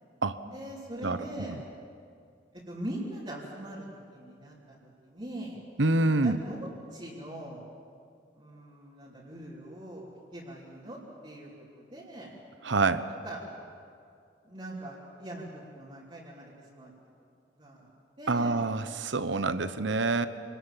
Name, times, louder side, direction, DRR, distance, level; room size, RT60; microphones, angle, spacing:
voice 1, 0.4-1.6 2.5-5.6 6.2-6.6 6.9-7.6 8.3-12.3 13.2-13.4 14.4-16.9 17.6-17.9 18.2-18.6, right 1 dB, 30° right, -7 dB, 3.2 m, -42 dB
voice 2, 1.0-1.6 5.8-6.4 12.6-13.0 18.3-20.3, right 3 dB, 85° right, 12 dB, 1.0 m, -27 dB
27.5 x 20.0 x 7.5 m, 2.4 s
head